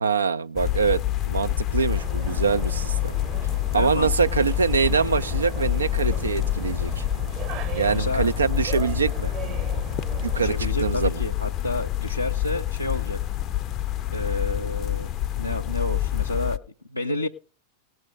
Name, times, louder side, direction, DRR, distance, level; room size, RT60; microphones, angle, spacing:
voice 1, 0.0-3.1 3.7-7.0 7.7-9.3 10.2-11.2, right 5 dB, 75° right, 0.5 m, -24 dB
sound 1, 0.6-16.6, left 13 dB, 30° left, 0.5 m, -27 dB
sound 2, 1.9-10.7, right 8 dB, 40° right, 1.0 m, -37 dB
voice 2, 3.7-4.4 7.6-8.3 10.3-13.2 14.1-15.1 15.3-16.6 16.9-17.3, left 1 dB, 85° left, 0.5 m, -30 dB
18.0 x 6.2 x 5.2 m
figure-of-eight pair, 90°, 0 cm